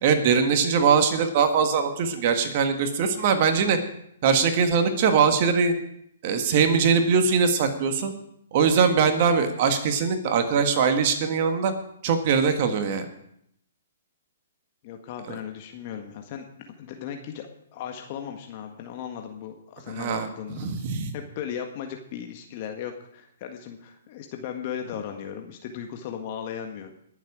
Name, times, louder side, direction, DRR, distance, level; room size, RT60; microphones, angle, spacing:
voice 1, 0.0-3.8 4.2-5.7 6.2-8.1 8.5-11.7 12.0-13.0 19.9-20.3 20.5-21.1, right 6 dB, 45° right, 7 dB, 1.7 m, -21 dB
voice 2, 14.8-16.4 16.8-20.8 21.1-26.9, left 8 dB, 40° left, 4 dB, 1.6 m, -36 dB
22.0 x 7.5 x 4.9 m, 0.72 s
figure-of-eight pair, 125°, 0 cm